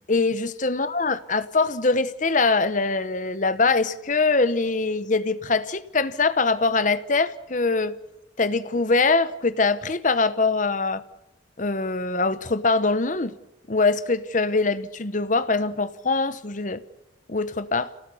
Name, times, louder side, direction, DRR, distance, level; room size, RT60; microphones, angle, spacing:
voice 1, 0.0-8.0 8.4-11.0 11.6-13.4 13.7-16.8 17.3-17.9, left 3 dB, 40° left, 1.0 m, -23 dB
26.5 x 18.0 x 7.0 m
head